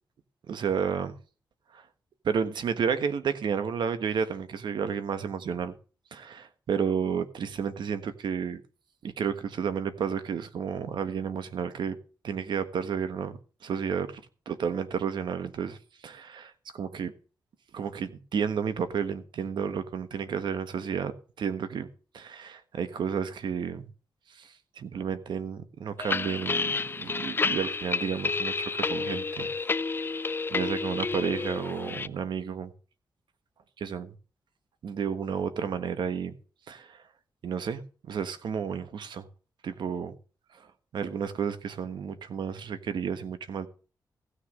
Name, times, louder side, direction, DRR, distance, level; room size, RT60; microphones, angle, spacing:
voice 1, 0.5-1.1 1.7-1.8 2.2-5.7 6.1-8.6 9.0-12.0 12.2-14.2 14.5-15.8 16.0-17.1 17.7-21.9 22.1-23.8 24.3-29.5 30.0-32.7 33.8-34.1 34.8-36.3 36.7-37.0 37.4-37.8 38.1-39.3 39.6-40.1 40.9-43.7, right 7 dB, 80° right, 1.4 m, -31 dB
sound 1, 26.0-32.1, left 4 dB, 30° left, 0.5 m, -30 dB
16.0 x 6.6 x 6.5 m
cardioid pair, 95°, 8 cm